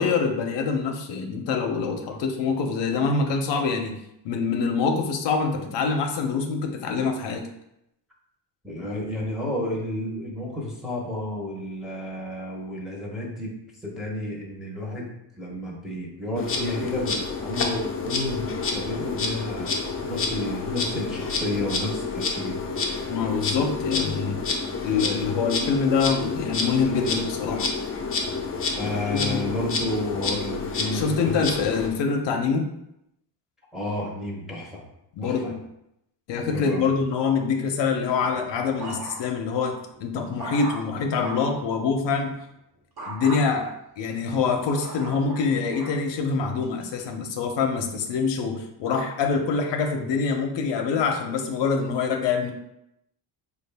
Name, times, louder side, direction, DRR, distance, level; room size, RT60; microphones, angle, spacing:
voice 1, 0.0-7.4 23.1-24.4 24.8-27.7 29.1-29.4 30.9-32.7 35.2-35.6 36.3-42.4 43.1-52.5, left 5 dB, 70° left, 4 dB, 0.6 m, -25 dB
voice 2, 1.8-2.2 8.6-13.5 13.8-22.6 28.7-31.4 33.7-34.8 35.2-35.5 36.5-36.9, left 1 dB, ahead, -4 dB, 0.8 m, -31 dB
Insect, 16.4-31.9, left 4 dB, 30° left, 0.5 m, -29 dB
sound 1, 38.1-39.5 39.9-41.6 43.0-43.4 44.0-46.0 46.6-47.0, right 2 dB, 50° right, 1.2 m, -38 dB
4.7 x 2.3 x 3.3 m, 0.81 s
cardioid pair, 150°, 45 cm